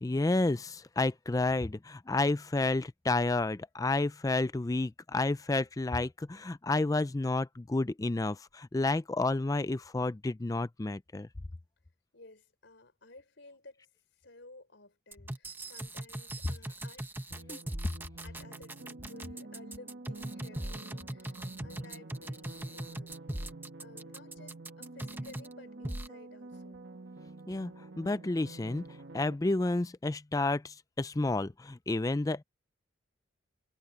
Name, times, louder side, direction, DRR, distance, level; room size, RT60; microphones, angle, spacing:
voice 1, 0.0-11.3 27.5-27.7 28.0-28.9 29.1-32.4, left 2 dB, 15° left, 0.4 m, -30 dB
voice 2, 12.1-13.9 14.2-17.7 18.2-23.2 23.8-26.9, left 2 dB, 65° left, 4.3 m, -55 dB
sound 1, 15.1-25.5 25.8-26.1, right 1 dB, 10° right, 1.1 m, -40 dB
sound 2, 17.3-29.3, right 2 dB, 60° right, 1.3 m, -48 dB
head